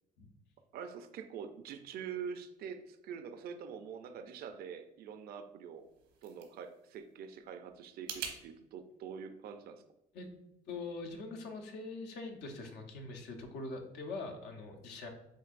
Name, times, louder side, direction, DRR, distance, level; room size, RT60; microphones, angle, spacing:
voice 1, 0.7-5.9 6.2-9.8, right 7 dB, 65° right, 7 dB, 0.5 m, -45 dB
sound 1, 5.7-8.4, right 7 dB, 85° right, 1.0 m, -46 dB
voice 2, 10.7-15.1, left 3 dB, 80° left, 3 dB, 0.9 m, -43 dB
7.6 x 2.7 x 2.5 m, 0.87 s
cardioid pair, 110°, 17 cm